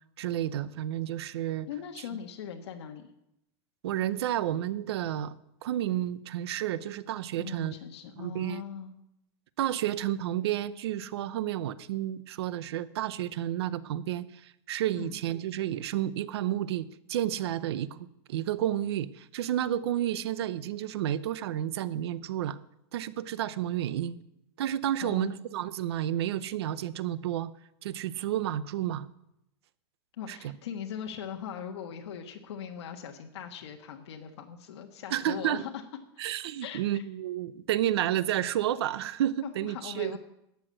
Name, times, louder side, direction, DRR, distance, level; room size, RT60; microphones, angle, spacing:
voice 1, 0.2-1.7 3.8-5.3 5.6-7.8 8.2-8.6 9.6-22.6 22.9-24.2 24.6-27.5 27.8-29.1 30.3-30.5 35.1-35.6 36.2-40.2, right 12 dB, 65° right, 17 dB, 0.7 m, -31 dB
voice 2, 1.7-3.1 7.4-9.0 14.9-15.2 25.0-25.4 30.2-35.8 36.6-37.0 39.4-40.2, left 8 dB, 75° left, 3 dB, 1.5 m, -40 dB
12.5 x 8.2 x 7.6 m, 0.82 s
supercardioid pair, 170°, 14 cm